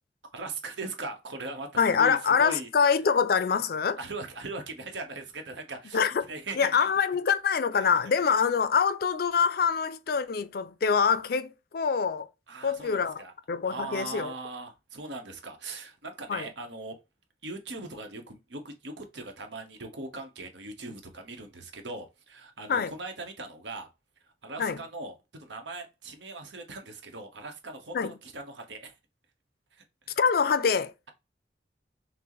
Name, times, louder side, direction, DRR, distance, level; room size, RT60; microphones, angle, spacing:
voice 1, 0.3-2.7 4.0-6.9 7.8-7.9 8.2-8.3 12.5-13.3 13.6-16.9 17.4-23.9 24.4-28.9 29.7-30.2, right 2 dB, 90° right, 1.0 m, -40 dB
voice 2, 1.8-4.0 5.9-6.2 6.6-12.3 12.6-14.3 16.3-16.5 22.7-22.9 24.6-24.8 27.9-28.1 30.2-30.9, left 6 dB, 55° left, 0.4 m, -25 dB
5.9 x 2.1 x 3.0 m
head